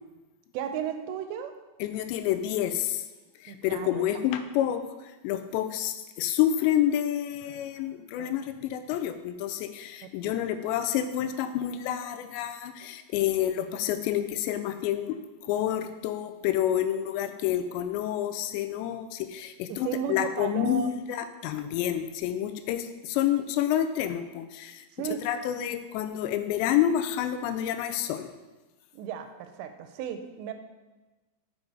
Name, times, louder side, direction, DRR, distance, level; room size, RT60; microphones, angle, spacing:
voice 1, 0.5-1.5 3.5-4.1 8.2-8.3 10.0-10.3 19.7-21.0 25.0-25.3 28.9-30.5, right 8 dB, 85° right, 7 dB, 2.8 m, -35 dB
voice 2, 1.8-3.0 3.6-4.8 5.2-15.2 15.5-28.3, left 11 dB, 85° left, 9 dB, 2.8 m, -28 dB
6.9 x 5.3 x 4.7 m, 1.2 s
omnidirectional pair, 5.0 m